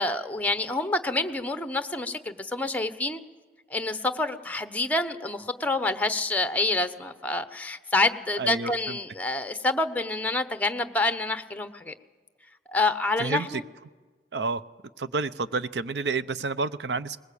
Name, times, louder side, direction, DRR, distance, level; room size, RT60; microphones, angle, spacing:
voice 1, 0.0-3.2 3.7-11.9 12.7-13.6, left 2 dB, 10° left, 10 dB, 0.9 m, -27 dB
voice 2, 8.4-9.0 13.2-13.6 14.3-14.6 15.0-17.2, right 4 dB, 70° right, 14 dB, 0.7 m, -29 dB
21.0 x 20.0 x 8.4 m, 1.3 s
head